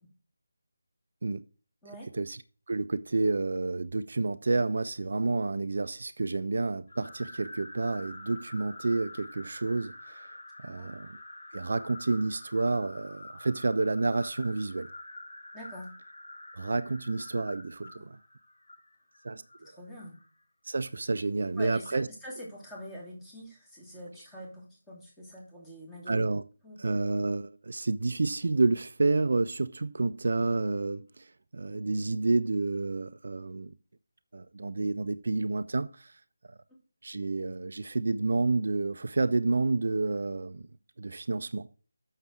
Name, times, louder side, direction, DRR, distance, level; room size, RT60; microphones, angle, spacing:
voice 1, 2.7-11.2 11.5-14.9 16.5-18.2 19.2-19.7 20.6-22.1 26.1-26.4 26.8-33.7 34.3-36.2 37.0-40.7 41.0-41.8, right 3 dB, 60° right, 0.5 m, -29 dB
sound 1, 6.9-20.3, left 2 dB, 60° left, 2.0 m, -47 dB
voice 2, 15.5-15.9 18.0-18.1 19.6-20.2 21.6-26.1 26.6-26.8, equal, 10° left, 2.9 m, -45 dB
7.0 x 6.5 x 6.1 m
figure-of-eight pair, 160°, 0 cm